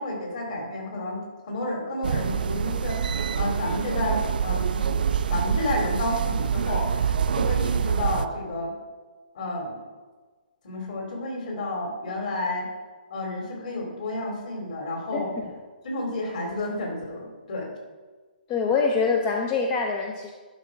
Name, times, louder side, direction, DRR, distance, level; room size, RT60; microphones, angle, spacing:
voice 1, 0.0-5.0 5.3-8.7 9.3-9.8 10.6-12.7 13.1-15.3 15.8-17.7, left 1 dB, 50° left, 1 dB, 2.5 m, -31 dB
sound 1, 2.0-8.3, right 7 dB, 60° right, 0.4 m, -26 dB
voice 2, 18.5-20.3, left 5 dB, 15° left, 2 dB, 0.5 m, -24 dB
11.5 x 4.3 x 4.9 m, 1.4 s
hypercardioid pair, 165°, 5 cm